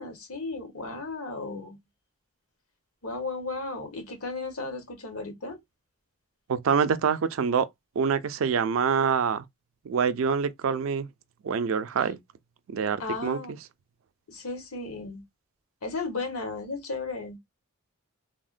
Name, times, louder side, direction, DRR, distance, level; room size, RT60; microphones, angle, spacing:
voice 1, 0.0-1.8 3.0-5.6 13.0-13.6 14.3-15.2 15.8-17.4, left 3 dB, 85° left, 1.1 m, -35 dB
voice 2, 6.5-7.7 8.0-9.4 9.9-11.1 11.4-12.2 12.7-13.4, right 6 dB, 65° right, 0.4 m, -25 dB
3.4 x 2.1 x 2.4 m
head